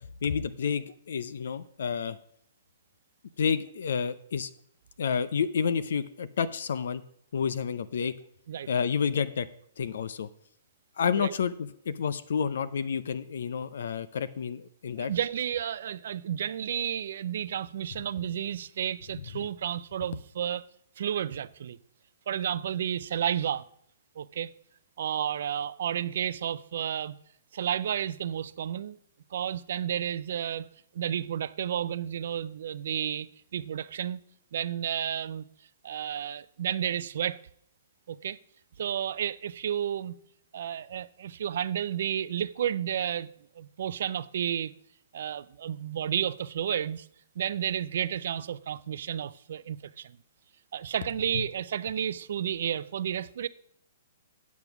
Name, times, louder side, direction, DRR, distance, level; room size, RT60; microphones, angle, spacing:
voice 1, 0.2-2.2 3.4-4.5 5.0-7.0 7.3-8.1 8.7-9.5 9.8-10.3 11.0-15.1 19.2-19.3, left 6 dB, 70° left, 0.6 m, -30 dB
voice 2, 15.0-20.7 21.0-21.8 22.3-23.6 24.2-24.5 25.0-27.1 27.5-29.0 29.3-30.7 30.9-33.3 33.5-34.2 34.5-35.4 35.8-37.4 38.1-38.4 38.8-40.1 40.5-43.3 43.6-44.7 45.1-47.1 47.4-50.2 50.7-53.5, right 9 dB, 60° right, 0.4 m, -31 dB
8.2 x 7.1 x 5.9 m
hypercardioid pair, 170°, 0 cm